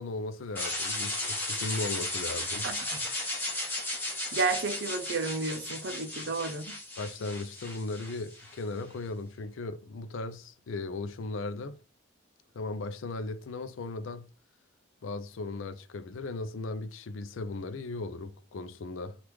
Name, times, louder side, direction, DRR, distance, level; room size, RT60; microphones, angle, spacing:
voice 1, 0.0-2.7 7.0-11.8 12.5-14.3 15.0-19.2, left 3 dB, 85° left, 0.4 m, -37 dB
sound 1, 0.5-8.6, left 2 dB, 10° left, 0.9 m, -35 dB
voice 2, 2.6-3.0 4.3-6.8, right 4 dB, 65° right, 0.5 m, -32 dB
3.0 x 2.4 x 3.4 m
head